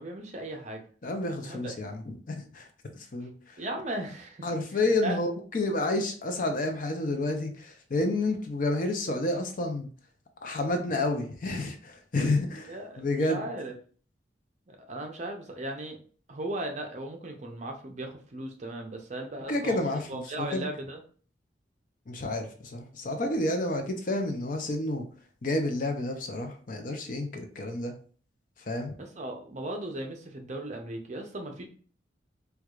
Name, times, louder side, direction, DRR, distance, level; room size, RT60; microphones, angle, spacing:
voice 1, 0.0-0.8 1.4-1.7 3.6-4.5 5.0-5.2 12.7-13.7 14.7-16.0 16.3-19.8 20.1-21.0 29.0-31.6, right 1 dB, 40° right, 3 dB, 0.6 m, -37 dB
voice 2, 1.0-2.7 3.1-3.6 4.4-9.9 10.4-13.5 19.5-20.7 22.1-25.1 25.4-28.0 28.7-28.9, left 2 dB, 45° left, 5 dB, 0.5 m, -30 dB
4.5 x 2.3 x 2.4 m, 0.43 s
head